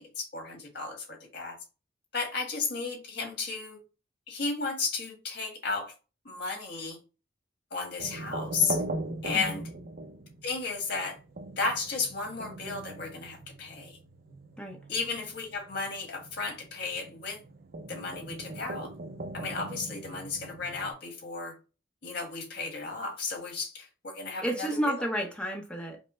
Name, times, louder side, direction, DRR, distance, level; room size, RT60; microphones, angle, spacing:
voice 1, 0.0-1.6 2.1-3.8 4.3-5.9 6.2-7.0 7.7-8.8 9.2-9.7 10.4-11.2 11.6-14.0 14.9-17.4 17.9-18.9 19.3-21.5 22.0-25.0, left 4 dB, 65° left, 1.6 m, -34 dB
sound 1, 8.0-20.9, right 2 dB, 55° right, 0.6 m, -41 dB
voice 2, 24.4-26.0, equal, 5° left, 0.7 m, -31 dB
5.3 x 2.1 x 4.3 m
head